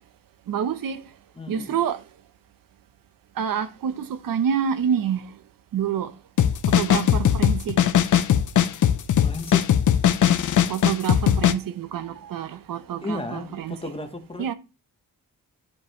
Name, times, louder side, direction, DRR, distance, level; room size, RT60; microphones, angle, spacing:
voice 1, 0.5-1.0 1.5-2.0 3.4-5.3 5.7-6.1 6.7-7.8 10.7-13.8 14.4-14.5, right 8 dB, 80° right, 0.8 m, -27 dB
voice 2, 1.4-1.8 9.2-9.7 13.0-14.5, left 2 dB, 15° left, 1.0 m, -33 dB
sound 1, 6.4-11.5, left 9 dB, 60° left, 0.6 m, -19 dB
9.8 x 5.0 x 2.9 m
wide cardioid pair, 170°, 34 cm